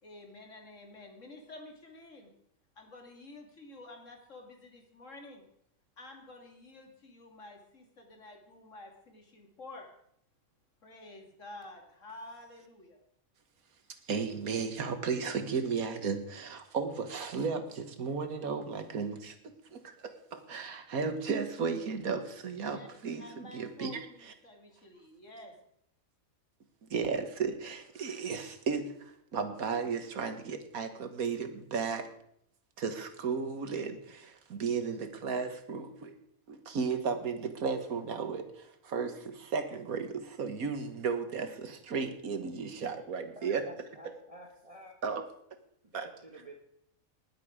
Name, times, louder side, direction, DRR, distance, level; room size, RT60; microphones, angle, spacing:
voice 1, 0.0-2.3 2.8-5.4 6.0-9.9 10.8-13.0 22.6-22.9 23.2-25.5, left 2 dB, 60° left, 2 dB, 2.6 m, -50 dB
voice 2, 14.1-24.3 26.8-32.1 32.8-36.2 36.5-43.6 45.0-45.2 45.9-46.1, right 5 dB, 80° right, 8 dB, 1.8 m, -34 dB
voice 3, 43.3-44.9 45.9-46.6, right 1 dB, 25° right, -1 dB, 1.7 m, -50 dB
20.0 x 7.7 x 4.9 m, 0.71 s
omnidirectional pair, 1.5 m